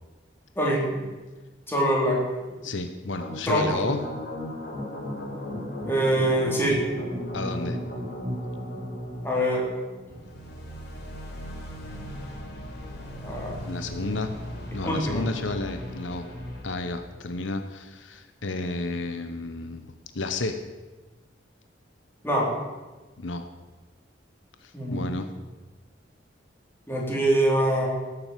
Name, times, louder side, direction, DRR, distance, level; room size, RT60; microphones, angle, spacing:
voice 1, 0.6-1.1 1.7-2.2 3.5-3.8 5.8-6.8 9.2-9.6 13.2-13.5 14.8-15.2 22.2-22.5 24.7-25.1 26.9-27.9, right 1 dB, 10° left, -3 dB, 4.0 m, -24 dB
voice 2, 2.6-4.1 7.3-7.8 13.7-14.4 14.7-16.3 16.6-20.6 23.2-23.5 24.6-25.3, left 2 dB, 75° left, 8 dB, 1.0 m, -31 dB
sound 1, 3.2-16.9, equal, 60° left, 4.8 m, -36 dB
17.5 x 7.9 x 7.5 m, 1.2 s
head